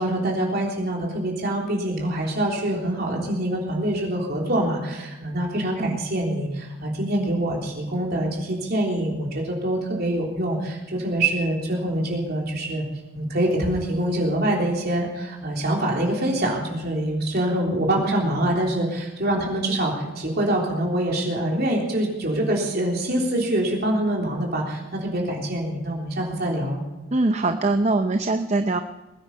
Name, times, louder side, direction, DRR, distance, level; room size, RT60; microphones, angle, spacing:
voice 1, 0.0-12.8 13.1-26.8, right 1 dB, 50° right, -2 dB, 3.5 m, -25 dB
voice 2, 27.1-28.8, right 2 dB, 35° right, 7 dB, 0.6 m, -22 dB
21.0 x 9.8 x 5.5 m, 1.1 s
head